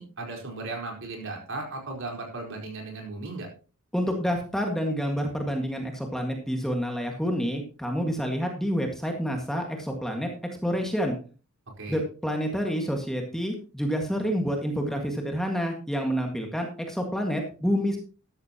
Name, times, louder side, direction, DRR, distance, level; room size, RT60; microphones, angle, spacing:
voice 1, 0.0-3.5 11.8-12.0, right 3 dB, 60° right, 2 dB, 4.4 m, -36 dB
voice 2, 3.9-10.3 10.6-11.2 11.9-18.0, equal, ahead, 2 dB, 1.8 m, -28 dB
13.5 x 12.0 x 2.9 m, 0.36 s
head